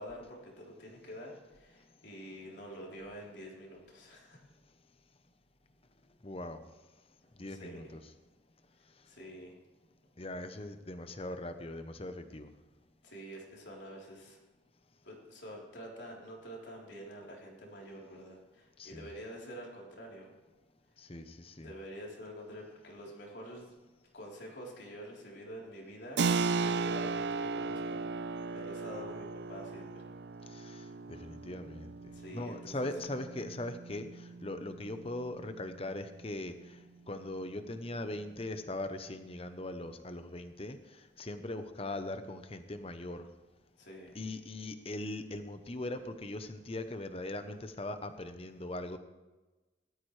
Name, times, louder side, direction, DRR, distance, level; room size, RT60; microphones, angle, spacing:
voice 1, 0.0-4.4 7.5-7.9 9.1-9.6 13.0-14.4 15.0-20.3 21.6-23.7 24.1-26.2 26.6-30.1 32.1-33.0 43.8-44.2, equal, 65° left, -2 dB, 3.7 m, -47 dB
voice 2, 6.2-6.6 7.4-8.0 10.2-12.5 18.8-19.1 21.0-21.7 30.5-43.3 44.1-49.0, left 1 dB, 30° left, 9 dB, 0.9 m, -40 dB
Keyboard (musical), 26.2-36.5, right 4 dB, 60° right, 0.4 m, -37 dB
17.5 x 13.0 x 3.3 m, 1.2 s
head